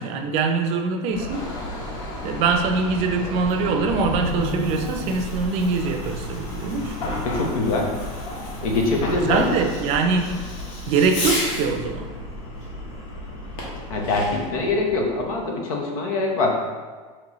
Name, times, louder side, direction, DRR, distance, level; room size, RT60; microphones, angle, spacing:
voice 1, 0.0-1.5 2.2-7.0 9.3-10.3 10.9-12.1, right 4 dB, 35° right, 4 dB, 0.4 m, -23 dB
Chatter / Car passing by / Traffic noise roadway noise, 1.1-15.4, left 1 dB, 70° left, 1.4 m, -33 dB
Engine, 1.3-6.0 6.3-6.7, left 1 dB, 25° left, 0.7 m, -40 dB
Fireworks, 4.1-11.8 13.6-14.6, left 1 dB, 45° left, 1.1 m, -35 dB
voice 2, 7.2-7.9 8.6-9.4 13.9-16.6, left 2 dB, 90° left, 0 dB, 1.0 m, -23 dB
5.2 x 3.1 x 3.0 m, 1.5 s
supercardioid pair, 155°, 17 cm